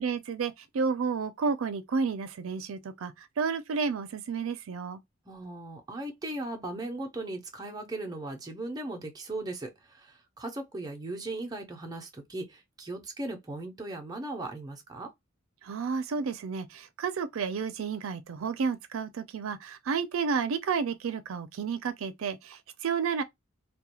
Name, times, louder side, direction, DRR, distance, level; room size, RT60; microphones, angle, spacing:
voice 1, 0.0-5.0 15.6-23.2, right 5 dB, 85° right, 0.4 m, -31 dB
voice 2, 5.3-15.1, right 2 dB, 20° right, 0.6 m, -38 dB
2.3 x 2.2 x 2.9 m
head